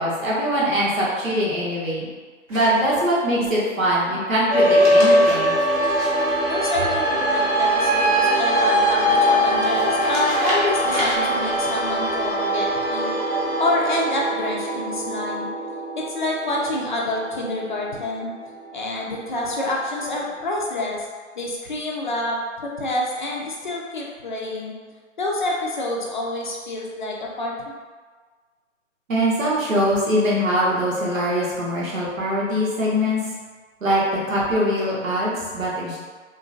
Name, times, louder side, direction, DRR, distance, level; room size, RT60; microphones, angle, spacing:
voice 1, 0.0-2.1 2.5-5.5 29.1-33.2 33.8-36.0, equal, 85° right, -6 dB, 1.2 m, -22 dB
sound 1, 2.5-3.2 4.6-7.2 9.6-11.2, equal, 30° right, 0.7 m, -32 dB
sound 2, 4.5-19.0, equal, 15° left, 0.8 m, -22 dB
voice 2, 6.5-13.1 13.6-15.5 15.9-18.3 18.7-21.1 21.4-24.7 25.2-27.5, left 2 dB, 40° left, -3 dB, 0.4 m, -27 dB
2.8 x 2.5 x 2.5 m, 1.5 s
hypercardioid pair, 145°, 39 cm